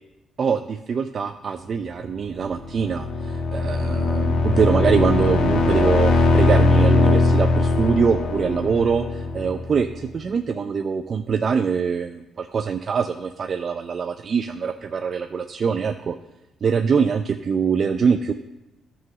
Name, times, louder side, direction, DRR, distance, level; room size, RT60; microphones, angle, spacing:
voice 1, 0.4-16.2 16.6-18.3, right 6 dB, 50° right, 7 dB, 0.5 m, -23 dB
sound 1, 2.3-10.1, left 3 dB, 80° left, 1.3 m, -20 dB
11.0 x 5.7 x 6.9 m, 0.97 s
cardioid pair, 90°, 0 cm